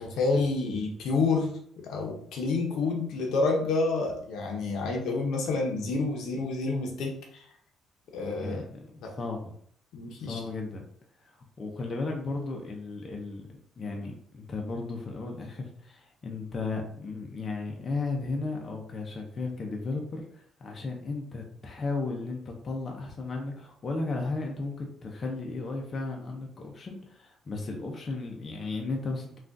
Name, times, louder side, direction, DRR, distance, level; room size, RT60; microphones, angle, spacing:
voice 1, 0.0-1.6 1.8-7.5 8.1-8.6 9.0-9.1 9.9-10.4, left 3 dB, 75° left, 1 dB, 0.7 m, -28 dB
voice 2, 8.4-8.9 9.2-9.5 10.2-10.8 11.2-29.4, left 3 dB, 35° left, 1 dB, 0.6 m, -35 dB
3.4 x 2.4 x 2.5 m, 0.62 s
cardioid pair, 105°, 0 cm